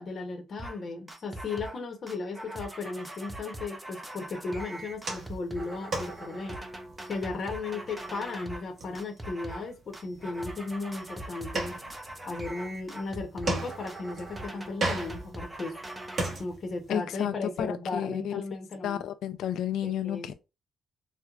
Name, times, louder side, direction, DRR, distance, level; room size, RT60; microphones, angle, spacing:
voice 1, 0.0-6.6 7.1-11.8 12.3-15.7 16.4-19.0 19.8-20.3, left 3 dB, 40° left, 0.8 m, -36 dB
sound 1, 0.6-0.8 1.1-8.7 9.0-9.7 9.9-16.3, right 1 dB, 10° right, 0.5 m, -42 dB
sound 2, 4.8-16.9, right 2 dB, 40° right, 1.1 m, -38 dB
voice 2, 16.9-20.3, left 10 dB, 85° left, 0.4 m, -32 dB
4.5 x 2.2 x 2.4 m
cardioid pair, 150°, 0 cm